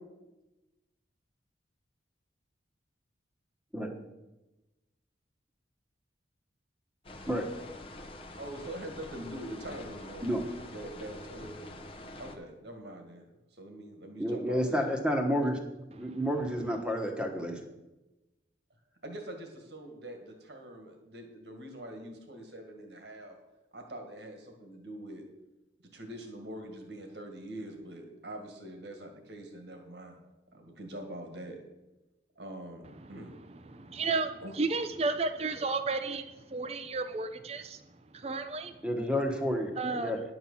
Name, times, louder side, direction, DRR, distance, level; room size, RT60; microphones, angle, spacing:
sound 1, 7.0-12.4, left 1 dB, 30° left, 0.8 m, -46 dB
voice 1, 8.4-10.4 10.7-11.6 12.2-14.9 19.0-23.4 23.7-25.3 25.9-30.2 30.5-31.6 32.4-33.3 34.4-34.5, right 1 dB, 65° right, 4 dB, 1.9 m, -44 dB
voice 2, 14.2-15.6 15.9-17.7 38.8-40.2, equal, 5° right, 3 dB, 1.2 m, -30 dB
voice 3, 15.9-16.3 32.8-33.3 33.5-38.9 39.8-40.2, right 3 dB, 35° right, 9 dB, 0.5 m, -34 dB
10.5 x 6.0 x 7.1 m, 1.0 s
head